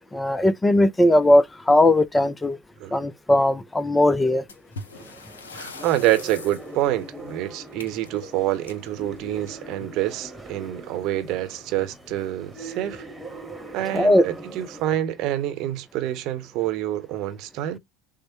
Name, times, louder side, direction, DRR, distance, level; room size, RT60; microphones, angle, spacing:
voice 1, 0.1-2.6 2.9-4.4 13.9-14.3, left 1 dB, 15° left, 0.5 m, -18 dB
sound 1, 4.5-9.9 11.1-11.3 11.6-11.7 12.3-12.4 13.1-13.4, left 3 dB, 80° left, 0.7 m, -43 dB
sound 2, 4.9-14.8, right 2 dB, 10° right, 1.3 m, -41 dB
voice 2, 5.5-13.0 13.7-17.8, right 13 dB, 55° right, 0.8 m, -27 dB
6.2 x 2.1 x 2.9 m
figure-of-eight pair, 70°, 0 cm